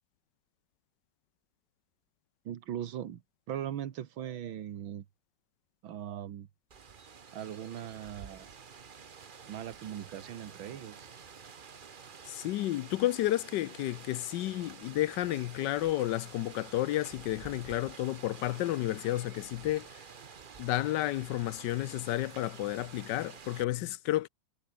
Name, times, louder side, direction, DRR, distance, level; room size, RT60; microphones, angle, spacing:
voice 1, 2.5-3.2 3.5-5.1 5.8-6.5 7.3-8.5 9.5-11.1, right 10 dB, 85° right, 2.0 m, -39 dB
Rain, 6.7-23.7, right 6 dB, 40° right, 0.8 m, -50 dB
voice 2, 12.3-19.9 20.6-24.3, left 15 dB, 70° left, 1.1 m, -31 dB
omnidirectional pair, 2.1 m